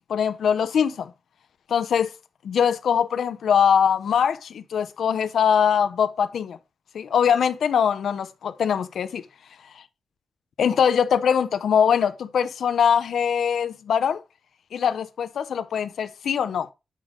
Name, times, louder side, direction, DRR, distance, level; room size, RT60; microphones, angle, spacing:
voice 1, 0.1-1.1 1.7-2.1 2.4-6.6 6.9-9.2 10.6-14.2 14.7-16.7, left 7 dB, 85° left, 0.6 m, -22 dB
9.1 x 5.1 x 3.6 m
wide cardioid pair, 145°, 0 cm